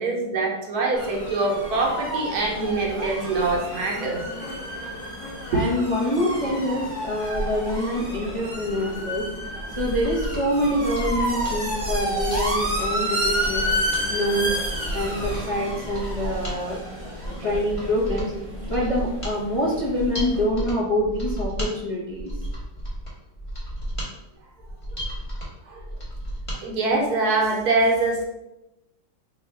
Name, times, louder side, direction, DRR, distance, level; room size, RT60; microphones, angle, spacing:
voice 1, 0.0-4.2 5.5-5.6 25.7-25.8 26.6-28.2, right 3 dB, 65° right, -1 dB, 1.2 m, -24 dB
sound 1, 0.9-20.4, equal, 25° right, 0.7 m, -31 dB
sound 2, 1.0-12.1 13.0-13.1, left 2 dB, 75° left, 1.4 m, -42 dB
voice 2, 5.5-9.3 9.8-13.7 14.1-14.5 14.9-16.8 17.3-18.3 18.7-22.3, equal, 45° left, -7 dB, 0.4 m, -25 dB
Mechanisms, 9.6-26.6 26.9-27.0, equal, 20° left, 0.9 m, -33 dB
3.4 x 2.4 x 4.4 m, 0.92 s
omnidirectional pair, 1.9 m